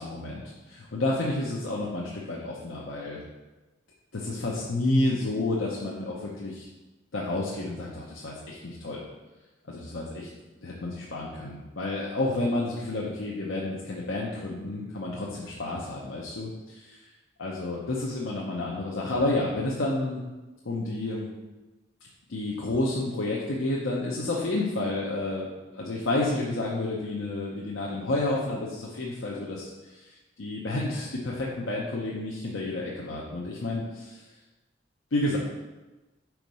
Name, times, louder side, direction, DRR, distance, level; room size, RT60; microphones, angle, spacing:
voice 1, 0.0-3.2 4.1-6.7 7.1-9.0 9.7-10.3 10.6-17.1 17.4-20.2 20.6-21.3 22.3-25.5 25.7-34.2 35.1-35.4, left 2 dB, 85° left, -4 dB, 0.8 m, -30 dB
4.7 x 4.6 x 5.3 m, 1.1 s
head